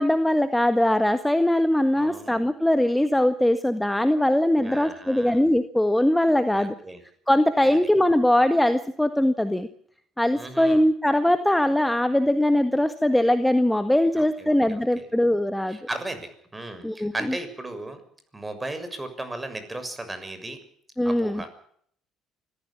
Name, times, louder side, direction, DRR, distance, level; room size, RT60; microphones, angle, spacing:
voice 1, 0.0-6.7 7.3-9.7 10.2-15.8 16.8-17.1 21.0-21.4, left 1 dB, 5° left, 10 dB, 1.7 m, -21 dB
voice 2, 2.0-2.3 4.6-5.4 6.5-7.0 7.7-7.8 10.3-10.9 14.1-15.1 15.7-18.0 18.3-20.6 21.0-21.5, right 2 dB, 15° right, 10 dB, 6.6 m, -36 dB
25.0 x 15.5 x 7.3 m, 0.64 s
supercardioid pair, 70°, 0 cm